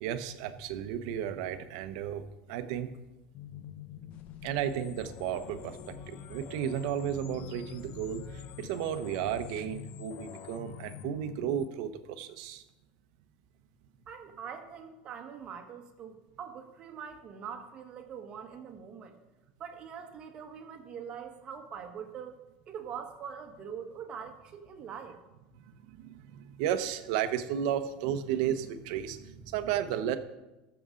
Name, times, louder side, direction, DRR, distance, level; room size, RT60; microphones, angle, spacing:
voice 1, 0.0-3.0 4.4-12.6 25.9-30.2, right 9 dB, 65° right, 10 dB, 0.9 m, -33 dB
sound 1, 3.3-11.7, left 9 dB, 40° left, 0.5 m, -46 dB
voice 2, 14.1-19.2 19.6-22.4 22.7-25.2, right 7 dB, 30° right, 4 dB, 1.3 m, -43 dB
19.5 x 6.9 x 3.8 m, 1.0 s
cardioid pair, 170°, 3 cm